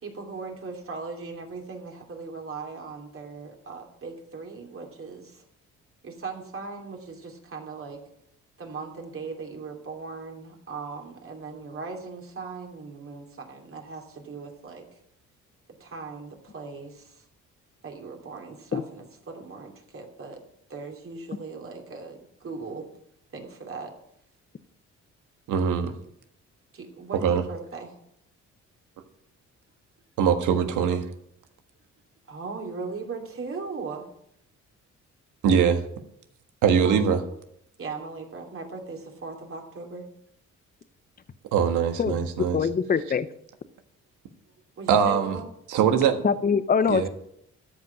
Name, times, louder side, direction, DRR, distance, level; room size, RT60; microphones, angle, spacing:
voice 1, 0.0-5.4 6.0-8.0 8.6-15.0 15.8-17.2 17.8-20.4 20.7-22.8 23.3-23.9 26.7-27.9 32.3-34.0 36.8-37.2 37.8-40.0 44.8-45.4, right 4 dB, 45° right, 1 dB, 2.9 m, -38 dB
voice 2, 25.5-25.9 27.2-27.4 30.2-31.0 35.4-35.8 36.6-37.2 41.5-42.6 44.9-45.4 45.7-46.2 46.9-47.1, right 7 dB, 90° right, 7 dB, 1.5 m, -22 dB
voice 3, 42.0-43.3 46.2-47.1, left 6 dB, 30° left, 14 dB, 0.8 m, -24 dB
13.5 x 5.2 x 8.6 m, 0.74 s
cardioid pair, 90°, 30 cm